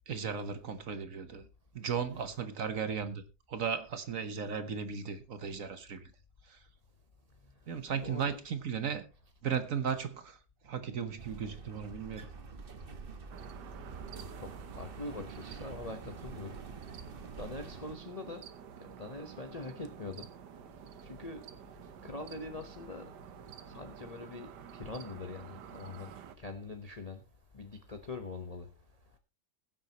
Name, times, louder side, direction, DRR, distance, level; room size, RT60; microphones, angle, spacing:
voice 1, 0.1-1.5 1.7-3.2 3.5-6.1 6.4-6.6 7.7-9.1 9.4-10.4 10.6-12.3, right 7 dB, 55° right, 1.2 m, -36 dB
voice 2, 8.0-8.4 14.4-16.6 17.4-18.5 18.8-20.3 21.0-21.5 22.0-23.1 23.6-27.2 27.5-28.7, left 3 dB, 30° left, 0.8 m, -43 dB
sound 1, 11.2-18.0, right 4 dB, 40° right, 1.0 m, -47 dB
sound 2, 13.3-26.3, right 8 dB, 70° right, 1.5 m, -50 dB
21.5 x 7.5 x 2.9 m
omnidirectional pair, 1.9 m